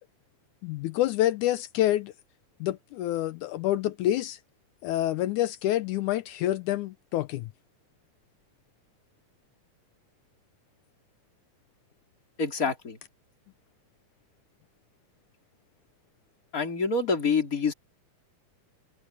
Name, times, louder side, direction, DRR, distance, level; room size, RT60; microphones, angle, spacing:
voice 1, 0.6-2.1 2.6-4.4 4.8-7.5, left 13 dB, 75° left, 2.1 m, -27 dB
voice 2, 12.4-13.0 16.5-17.7, left 4 dB, 25° left, 3.9 m, -26 dB
omnidirectional pair, 3.7 m